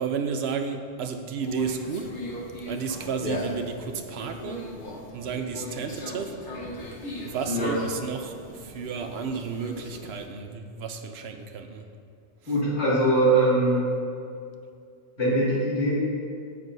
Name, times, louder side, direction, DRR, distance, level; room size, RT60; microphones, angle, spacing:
voice 1, 0.0-2.1 2.7-4.7 5.1-6.3 7.2-11.9, right 6 dB, 70° right, 6 dB, 0.8 m, -32 dB
Conversation, 1.4-10.3, left 1 dB, 45° left, 1.2 m, -37 dB
voice 2, 12.5-13.9 15.2-16.0, right 1 dB, 70° left, -10 dB, 2.5 m, -22 dB
8.8 x 7.8 x 2.7 m, 2.4 s
omnidirectional pair, 1.2 m